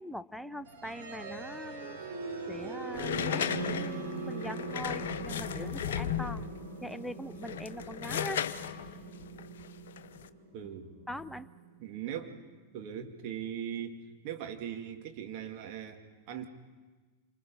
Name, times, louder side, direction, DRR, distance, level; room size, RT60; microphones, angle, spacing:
voice 1, 0.0-2.0 2.5-6.5 6.8-8.4 11.1-11.5, equal, ahead, 13 dB, 0.7 m, -42 dB
sound 1, 0.6-12.5, right 3 dB, 65° right, 5.9 m, -41 dB
sound 2, 2.9-6.6 7.3-10.3, left 9 dB, 60° left, 0.9 m, -35 dB
voice 2, 10.5-10.9 11.8-12.4 12.7-16.5, right 9 dB, 45° right, 4 dB, 2.2 m, -40 dB
27.5 x 25.5 x 5.5 m, 1.3 s
figure-of-eight pair, 90°, 0 cm